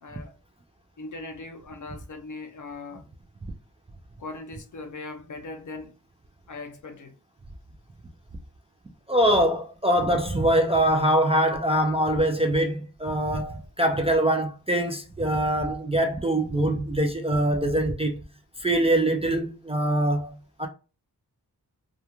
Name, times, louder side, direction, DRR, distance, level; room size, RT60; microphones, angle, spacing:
voice 1, 0.0-0.3 1.0-3.0 4.2-5.9 6.5-7.1, left 3 dB, 50° left, 0.6 m, -39 dB
voice 2, 9.1-18.1 18.6-20.3 20.6-20.7, right 1 dB, 15° right, 0.4 m, -23 dB
2.3 x 2.2 x 2.9 m
wide cardioid pair, 75°, 39 cm